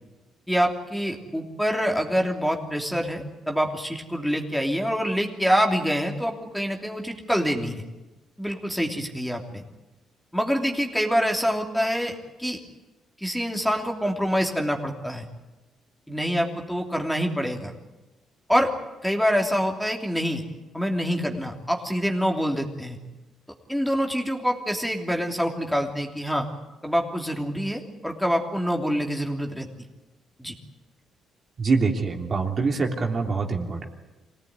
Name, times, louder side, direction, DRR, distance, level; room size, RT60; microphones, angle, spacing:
voice 1, 0.5-7.8 8.4-9.6 10.3-12.6 13.2-15.2 16.1-17.7 18.5-18.7 19.0-20.4 20.7-23.0 23.7-26.5 26.8-29.7 30.4-30.5, equal, ahead, 2 dB, 3.0 m, -26 dB
voice 2, 31.6-33.9, right 4 dB, 45° right, 2 dB, 3.1 m, -24 dB
25.0 x 18.0 x 9.6 m, 1.1 s
cardioid pair, 90°, 0 cm